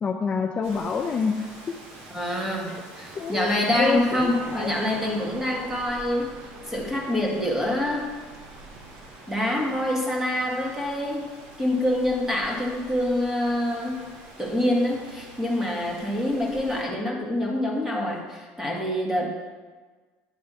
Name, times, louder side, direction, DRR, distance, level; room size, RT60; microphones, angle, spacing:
voice 1, 0.0-1.5 2.7-2.8 3.1-4.7, left 5 dB, 30° left, 3 dB, 0.5 m, -27 dB
Rain, 0.6-16.8, right 1 dB, 80° right, 2.3 m, -46 dB
voice 2, 2.1-6.4 6.7-8.1 9.3-11.3 11.6-14.1 14.4-19.3, left 1 dB, 10° right, -1 dB, 1.7 m, -26 dB
sound 1, 3.0-9.8, right 5 dB, 50° right, 0.8 m, -45 dB
10.0 x 3.4 x 6.8 m, 1.4 s
cardioid pair, 125°, 4 cm